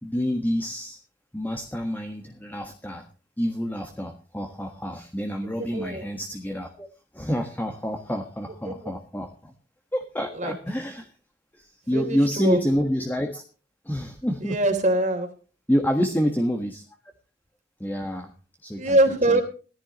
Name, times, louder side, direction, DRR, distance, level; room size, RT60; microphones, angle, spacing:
voice 1, 0.0-1.0 1.3-3.1 3.4-6.9 7.1-9.5 9.9-11.1 11.5-13.4 13.8-14.6 15.7-16.8 17.8-18.3 18.6-19.0 19.3-19.4, equal, 10° left, 5 dB, 1.5 m, -28 dB
voice 2, 5.7-6.1 8.7-8.8 10.4-10.5 11.9-12.6 14.4-15.3 18.8-19.4, right 1 dB, 40° right, 6 dB, 3.2 m, -22 dB
18.0 x 14.5 x 3.1 m, 0.37 s
head